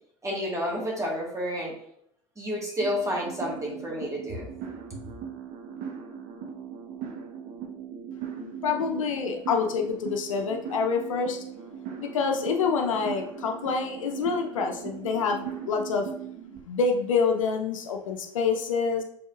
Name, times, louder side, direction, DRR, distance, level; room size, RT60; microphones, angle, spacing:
voice 1, 0.2-1.7 2.4-4.4, equal, 20° right, -3 dB, 1.6 m, -30 dB
sound 1, 2.8-16.6, right 7 dB, 60° right, 0.9 m, -39 dB
voice 2, 8.4-11.4 12.0-16.1 16.7-19.0, left 5 dB, 85° left, 4 dB, 0.6 m, -27 dB
6.2 x 3.5 x 2.4 m, 0.70 s
hypercardioid pair, 70°, 16 cm